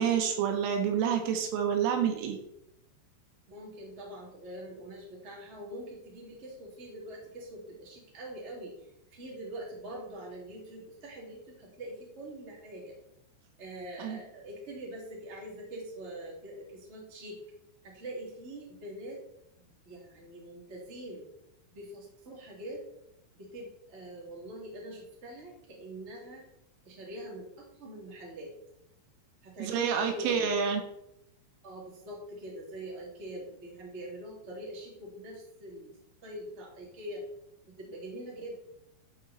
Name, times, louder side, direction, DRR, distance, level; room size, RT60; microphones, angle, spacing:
voice 1, 0.0-2.4 14.0-14.2 29.6-30.8, right 7 dB, 80° right, 4 dB, 4.0 m, -28 dB
voice 2, 3.5-13.0 13.6-17.4 17.8-19.2 19.6-21.2 21.7-22.8 23.3-26.4 26.8-28.5 29.4-30.5 31.6-35.9 36.2-37.2 37.6-38.6, right 1 dB, 20° right, -3 dB, 2.1 m, -43 dB
11.5 x 6.4 x 4.3 m, 0.80 s
omnidirectional pair, 5.9 m